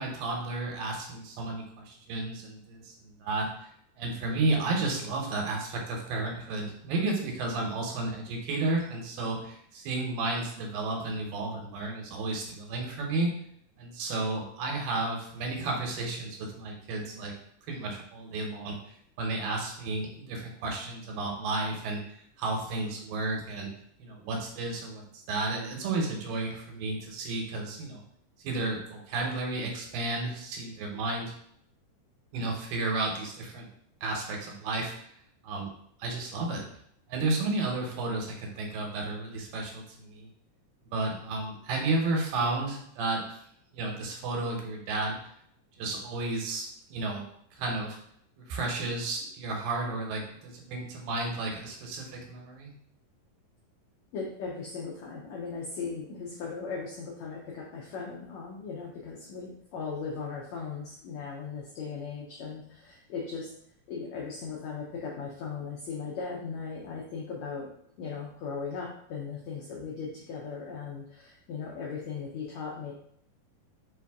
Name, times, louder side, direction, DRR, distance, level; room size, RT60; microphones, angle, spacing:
voice 1, 0.0-3.5 4.0-13.3 13.8-17.3 17.7-18.8 19.2-22.0 22.4-23.7 24.0-25.0 25.3-28.0 28.4-31.3 32.3-33.7 34.0-34.9 35.4-35.7 36.0-36.6 37.1-40.3 40.9-43.2 43.7-45.2 45.8-46.7 46.9-47.2 47.5-48.0 48.4-52.7, right 2 dB, 85° right, 0 dB, 2.7 m, -32 dB
voice 2, 54.1-63.5 63.9-67.7 68.0-72.9, left 5 dB, 85° left, -2 dB, 1.5 m, -38 dB
5.4 x 2.6 x 3.5 m, 0.69 s
omnidirectional pair, 3.9 m